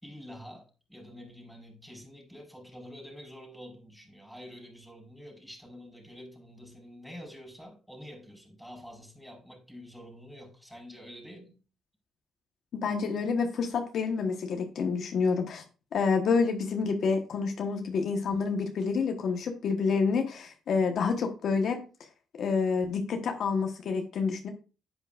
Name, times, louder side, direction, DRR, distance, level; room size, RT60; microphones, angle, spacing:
voice 1, 0.0-11.6, equal, ahead, 5.0 m, -47 dB
voice 2, 12.7-15.6 15.9-21.8 22.4-24.5, left 5 dB, 65° left, 1.3 m, -28 dB
10.0 x 8.7 x 2.5 m
cardioid pair, 90°, 0 cm